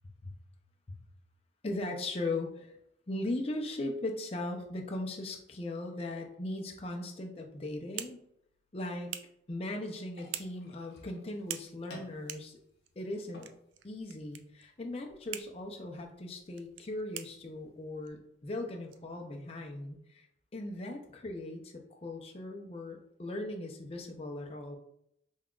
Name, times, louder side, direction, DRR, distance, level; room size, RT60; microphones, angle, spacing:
voice 1, 1.6-2.7 3.1-8.2 8.7-9.1 9.5-12.6 13.0-13.4 13.8-20.3 20.5-24.8, left 2 dB, 30° left, 2 dB, 0.5 m, -38 dB
sound 1, 7.4-19.8, right 11 dB, 80° right, 0.3 m, -48 dB
sound 2, 10.1-18.1, left 1 dB, 55° left, 0.8 m, -57 dB
5.4 x 2.3 x 2.4 m, 0.76 s
head